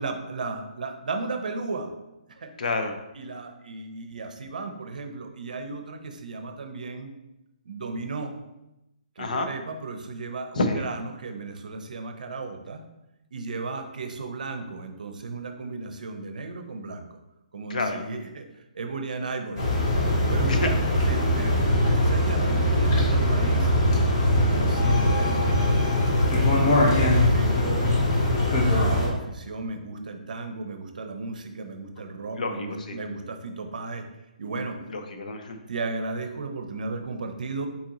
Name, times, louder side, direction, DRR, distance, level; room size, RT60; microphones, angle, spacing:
voice 1, 0.0-1.9 2.4-2.5 3.2-7.1 7.7-8.3 9.2-12.8 13.3-17.2 17.5-18.5 18.7-19.7 20.3-20.8 21.1-23.7 24.4-27.0 27.3-28.0 28.7-34.0 34.4-34.8 35.7-37.7, right 3 dB, 70° right, 6 dB, 0.6 m, -35 dB
voice 2, 2.6-3.0 9.2-9.5 10.5-10.9 17.7-18.0 20.5-20.7 32.4-33.0 34.9-35.6, left 3 dB, 65° left, 6 dB, 0.6 m, -29 dB
sound 1, 19.6-29.1, left 1 dB, 30° left, 1.0 m, -21 dB
4.1 x 3.8 x 2.9 m, 0.93 s
hypercardioid pair, 170°, 4 cm